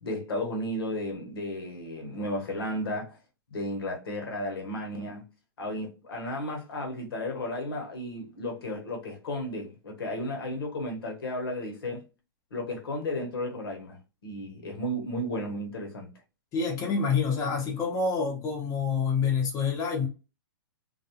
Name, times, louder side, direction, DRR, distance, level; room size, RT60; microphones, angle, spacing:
voice 1, 0.0-3.2 3.5-5.2 5.6-12.0 12.5-14.0 14.2-16.1, left 1 dB, 75° left, 1.0 m, -33 dB
voice 2, 16.5-20.1, left 5 dB, 25° left, 0.8 m, -27 dB
2.3 x 2.3 x 2.8 m
hypercardioid pair, 135°, 12 cm